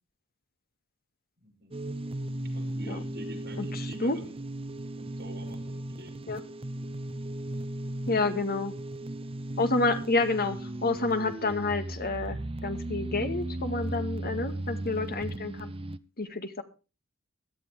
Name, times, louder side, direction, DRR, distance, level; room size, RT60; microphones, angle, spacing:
voice 1, 1.4-1.8 2.5-4.4 4.9-6.3 8.2-8.3, right 1 dB, 50° right, 1 dB, 6.5 m, -47 dB
sound 1, 1.7-16.0, right 1 dB, 25° right, 0.7 m, -36 dB
voice 2, 3.6-4.2 6.3-6.4 8.1-8.7 9.6-15.7 16.2-16.6, left 3 dB, 45° left, 8 dB, 2.0 m, -29 dB
17.5 x 13.0 x 3.4 m, 0.32 s
head